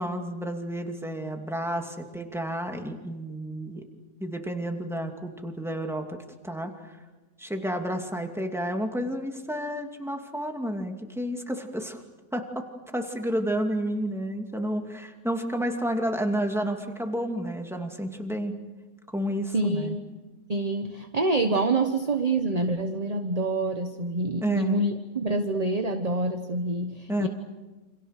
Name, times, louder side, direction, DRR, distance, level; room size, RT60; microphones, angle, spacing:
voice 1, 0.0-3.8 4.2-7.0 7.4-12.0 12.3-12.7 12.9-18.5 19.1-20.0 24.4-24.8 27.1-27.3, equal, ahead, 3 dB, 2.5 m, -30 dB
voice 2, 19.5-20.0 20.5-27.3, right 2 dB, 25° right, 6 dB, 1.2 m, -26 dB
29.0 x 27.0 x 6.7 m, 1.2 s
omnidirectional pair, 1.6 m